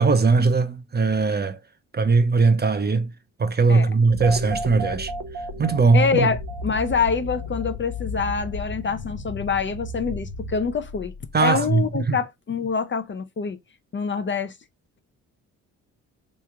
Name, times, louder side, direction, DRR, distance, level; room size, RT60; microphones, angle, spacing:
voice 1, 0.0-1.6 1.9-3.1 3.4-5.1 5.6-6.3 11.3-12.2, right 4 dB, 30° right, 0.7 m, -20 dB
sound 1, 4.1-11.6, left 3 dB, 85° left, 0.9 m, -35 dB
sound 2, 4.2-8.2, right 4 dB, 65° right, 0.8 m, -34 dB
voice 2, 5.9-6.4 6.6-11.1 11.4-13.6 13.9-14.5, left 5 dB, 35° left, 0.6 m, -25 dB
3.2 x 3.1 x 3.5 m
supercardioid pair, 55°, 35 cm